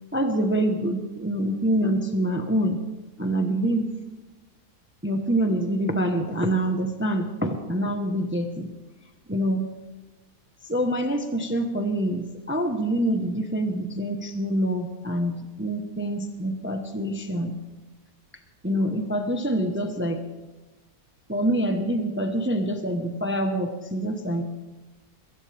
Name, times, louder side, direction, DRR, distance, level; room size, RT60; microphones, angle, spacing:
voice 1, 0.1-2.8 3.2-3.9 5.0-8.7 9.3-9.7 10.7-17.6 18.6-20.2 21.3-24.5, right 1 dB, 10° right, 5 dB, 0.9 m, -26 dB
21.5 x 17.5 x 3.5 m, 1.1 s
omnidirectional pair, 1.7 m